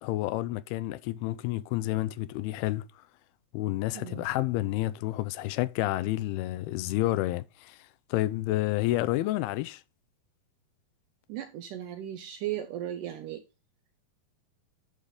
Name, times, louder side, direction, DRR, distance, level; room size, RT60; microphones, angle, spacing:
voice 1, 0.0-3.0 3.5-9.8, left 16 dB, 85° left, 2.5 m, -30 dB
voice 2, 3.9-4.3 11.3-13.4, right 12 dB, 75° right, 1.9 m, -36 dB
11.0 x 4.0 x 4.9 m
omnidirectional pair, 4.4 m